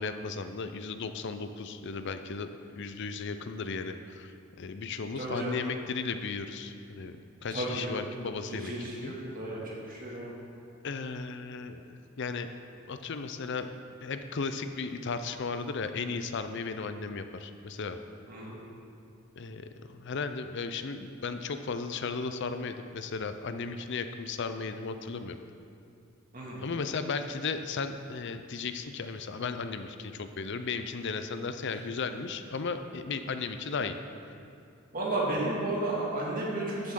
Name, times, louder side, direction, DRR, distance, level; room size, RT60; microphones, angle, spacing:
voice 1, 0.0-2.5 2.8-9.2 10.8-12.5 12.9-13.7 14.0-18.0 19.4-25.4 26.6-34.0, left 4 dB, 60° left, 9 dB, 0.6 m, -35 dB
voice 2, 5.2-5.6 7.5-8.0 8.5-10.3 18.3-18.6 26.3-26.6 34.9-36.9, right 2 dB, 45° right, -5 dB, 2.4 m, -33 dB
14.0 x 7.8 x 3.8 m, 2.5 s
head